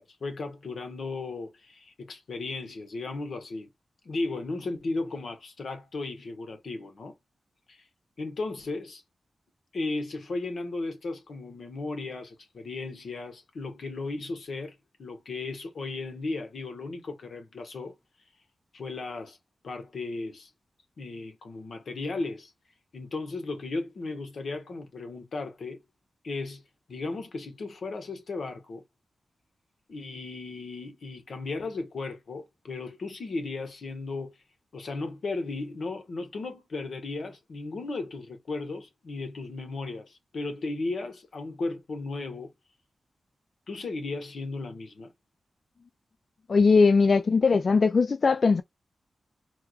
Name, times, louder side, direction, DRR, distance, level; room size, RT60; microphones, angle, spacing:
voice 1, 0.0-3.7 4.0-7.1 7.7-7.8 8.2-9.0 9.7-17.9 18.7-19.4 19.6-20.5 21.0-22.5 22.9-25.8 26.2-26.6 26.9-28.8 29.9-34.4 34.7-42.5 43.7-45.1, left 3 dB, 75° left, 1.2 m, -35 dB
voice 2, 46.5-48.6, left 4 dB, 60° left, 0.3 m, -20 dB
4.5 x 2.3 x 2.3 m
cardioid pair, 65°, 0 cm